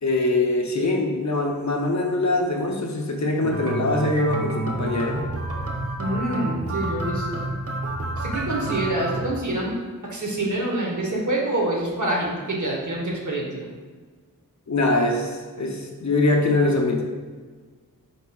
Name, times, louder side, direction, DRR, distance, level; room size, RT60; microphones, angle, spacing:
voice 1, 0.0-5.3 14.7-17.0, left 2 dB, 55° left, 1 dB, 0.6 m, -23 dB
sound 1, 3.4-9.3, right 2 dB, 45° right, 0.5 m, -29 dB
voice 2, 6.0-7.5 8.2-9.8 10.0-13.7, right 1 dB, 60° right, -2 dB, 1.0 m, -26 dB
4.6 x 4.0 x 2.3 m, 1.5 s
wide cardioid pair, 65°, 34 cm